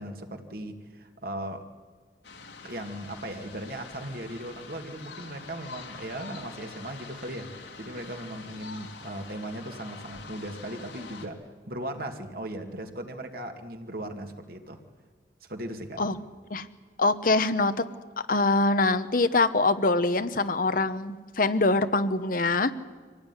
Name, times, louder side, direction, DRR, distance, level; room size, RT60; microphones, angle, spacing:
voice 1, 0.0-1.6 2.6-11.4 11.7-14.8 15.4-16.1, right 1 dB, 55° right, 5 dB, 2.2 m, -38 dB
sound 1, 2.2-11.3, left 4 dB, 80° left, 2.8 m, -45 dB
voice 2, 17.0-17.7 18.3-22.7, left 3 dB, 50° left, 11 dB, 1.0 m, -24 dB
25.0 x 17.5 x 9.8 m, 1.5 s
head